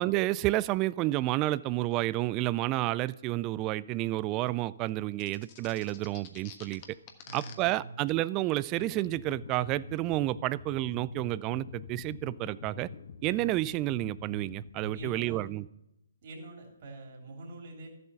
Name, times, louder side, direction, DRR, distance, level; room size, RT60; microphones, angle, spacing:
voice 1, 0.0-6.8 7.3-12.9 13.2-15.6, right 17 dB, 25° right, 19 dB, 0.3 m, -30 dB
sound 1, 5.2-7.5, left 9 dB, 35° left, 1.4 m, -48 dB
voice 2, 7.2-8.1 14.9-15.4 16.2-17.9, right 2 dB, 45° right, 0 dB, 3.1 m, -45 dB
sound 2, 8.8-15.5, left 5 dB, 50° left, 0.8 m, -45 dB
13.0 x 7.7 x 5.6 m, 0.85 s
figure-of-eight pair, 135°, 0 cm